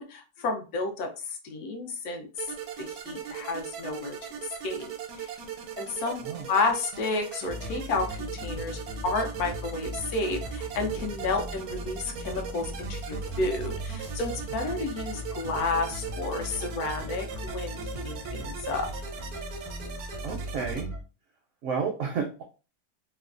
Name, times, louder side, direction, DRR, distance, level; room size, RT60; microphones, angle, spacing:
voice 1, 0.0-2.5 2.8-4.8 5.2-5.4 5.8-6.2 6.5-18.9, left 3 dB, 80° left, 3 dB, 1.2 m, -31 dB
sound 1, 2.4-20.8, right 7 dB, 85° right, 1.1 m, -39 dB
sound 2, 7.5-21.0, equal, 25° right, 0.3 m, -38 dB
voice 2, 20.2-20.9 21.6-22.4, right 5 dB, 70° right, 3 dB, 0.8 m, -31 dB
3.1 x 2.1 x 2.4 m, 0.33 s
omnidirectional pair, 1.6 m